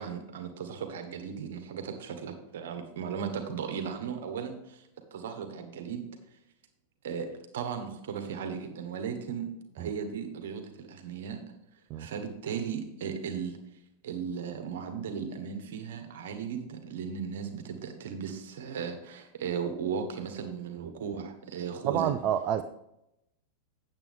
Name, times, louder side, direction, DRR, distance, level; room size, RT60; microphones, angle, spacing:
voice 1, 0.0-6.0 7.0-7.3 7.5-9.5 9.7-11.4 12.0-13.6 14.0-22.1, right 7 dB, 55° right, 6 dB, 1.5 m, -36 dB
voice 2, 21.9-22.6, right 10 dB, 40° right, 8 dB, 0.4 m, -28 dB
9.0 x 7.6 x 3.7 m, 0.84 s
figure-of-eight pair, 90°, 0 cm